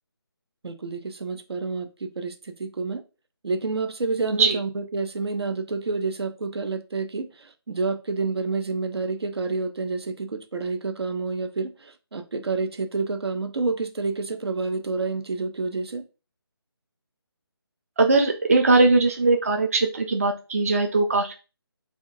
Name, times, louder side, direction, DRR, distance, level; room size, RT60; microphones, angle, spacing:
voice 1, 0.6-3.0 3.4-16.1, right 3 dB, 75° right, 0.6 m, -29 dB
voice 2, 18.0-21.3, right 3 dB, 35° right, 0.4 m, -20 dB
3.6 x 2.4 x 2.6 m
figure-of-eight pair, 170°, 13 cm